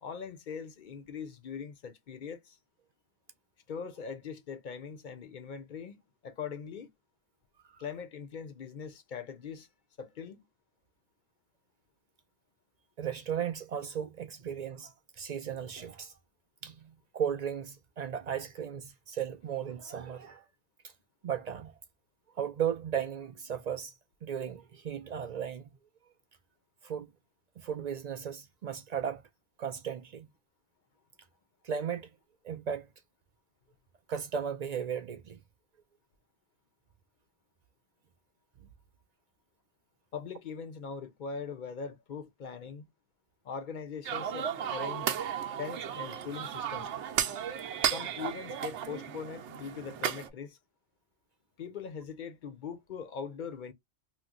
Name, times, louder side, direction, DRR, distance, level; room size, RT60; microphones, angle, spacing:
voice 1, 0.0-2.6 3.7-6.0 6.2-6.9 7.8-9.7 10.0-10.5 40.1-42.9 43.4-45.2 45.6-46.9 47.9-50.6 51.6-53.7, left 6 dB, 50° left, 0.7 m, -41 dB
voice 2, 13.0-16.1 16.6-20.4 20.8-20.9 21.2-21.8 22.4-23.9 24.2-25.7 26.8-27.1 27.6-29.2 29.6-30.3 31.6-32.1 32.4-32.9 34.1-35.4 38.6-38.7, right 8 dB, 60° right, 0.4 m, -36 dB
sound 1, 44.0-50.3, right 9 dB, 90° right, 0.9 m, -34 dB
3.0 x 2.0 x 3.7 m
omnidirectional pair, 1.2 m